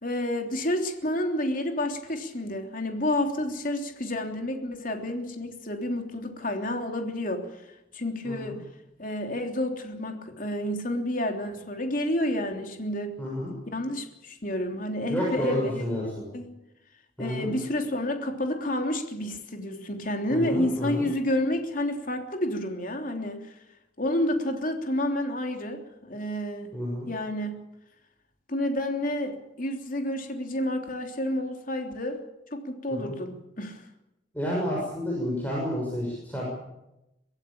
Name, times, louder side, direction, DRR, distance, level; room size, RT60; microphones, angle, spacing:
voice 1, 0.0-7.4 7.9-8.6 9.0-13.2 13.7-16.5 17.2-23.5 24.0-26.7 27.1-27.6 28.5-29.3 29.6-32.2 32.5-33.8, left 1 dB, 45° left, 4 dB, 3.3 m, -30 dB
voice 2, 8.2-8.6 13.2-13.5 15.1-16.2 17.2-17.5 20.3-21.1 26.7-27.1 33.0-33.2 34.3-36.5, equal, 10° left, -4 dB, 6.7 m, -30 dB
23.5 x 15.5 x 8.7 m, 0.89 s
head